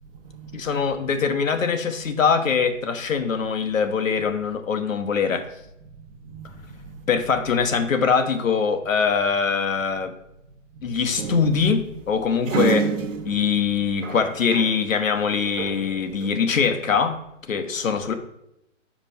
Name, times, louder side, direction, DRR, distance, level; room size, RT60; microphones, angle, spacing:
voice 1, 0.0-0.7 6.0-7.1 10.7-11.0 13.6-13.7, right 4 dB, 45° right, 1.0 m, -44 dB
voice 2, 0.5-5.5 7.1-10.1 10.8-12.9 13.2-17.2 17.5-18.1, left 6 dB, 90° left, 1.0 m, -23 dB
sound 1, 11.2-14.9 15.2-16.4, right 6 dB, 75° right, 1.0 m, -29 dB
7.9 x 4.9 x 3.5 m
hypercardioid pair, 155°, 39 cm